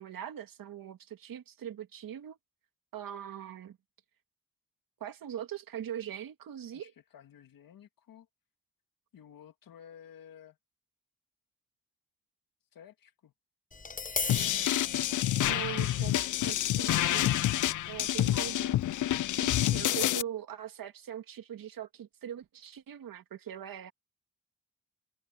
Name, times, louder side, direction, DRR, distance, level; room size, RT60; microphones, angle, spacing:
voice 1, 0.0-2.4 2.9-3.8 5.0-6.9 15.5-17.5 17.9-18.8 19.4-23.9, right 10 dB, 85° right, 2.4 m, -41 dB
voice 2, 6.7-8.3 9.1-10.6 12.7-13.3 14.2-15.5, left 9 dB, 80° left, 2.0 m, -54 dB
Tap, 13.7-19.8, left 4 dB, 25° left, 0.8 m, -41 dB
sound 1, 14.3-20.2, left 13 dB, 65° left, 0.5 m, -28 dB
cardioid pair, 80°, 33 cm